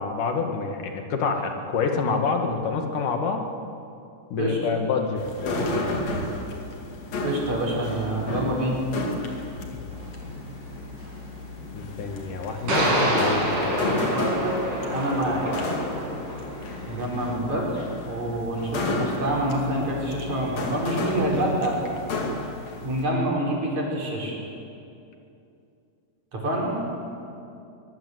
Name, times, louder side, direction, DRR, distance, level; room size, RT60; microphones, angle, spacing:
voice 1, 0.0-3.4 4.3-6.1 9.7-9.8 11.7-14.0, left 5 dB, 80° left, 4 dB, 3.4 m, -27 dB
sound 1, 5.2-23.0, left 2 dB, 55° left, 3.6 m, -32 dB
voice 2, 7.2-8.8 13.9-14.5 14.9-15.4 16.9-21.8 22.8-24.4 26.3-26.7, right 1 dB, 60° right, -3 dB, 6.1 m, -27 dB
sound 2, 9.9-10.0 12.7-17.0, right 1 dB, 85° right, 6.8 m, -27 dB
22.5 x 22.0 x 8.2 m, 2.6 s
omnidirectional pair, 3.6 m